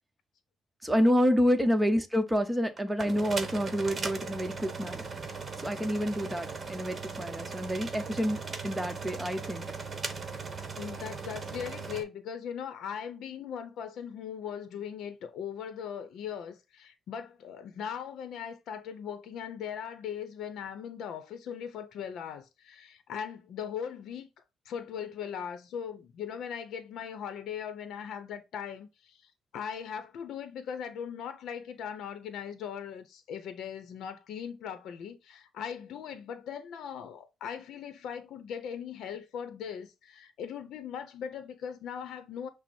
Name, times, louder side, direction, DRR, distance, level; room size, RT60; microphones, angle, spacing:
voice 1, 0.8-5.1 5.6-9.7, equal, 10° right, 0.8 m, -28 dB
sound 1, 2.8-12.0, right 4 dB, 35° right, 0.9 m, -38 dB
voice 2, 10.8-24.3 24.7-42.5, left 8 dB, 75° left, 0.6 m, -39 dB
5.9 x 2.0 x 4.3 m
cardioid pair, 90°, 0 cm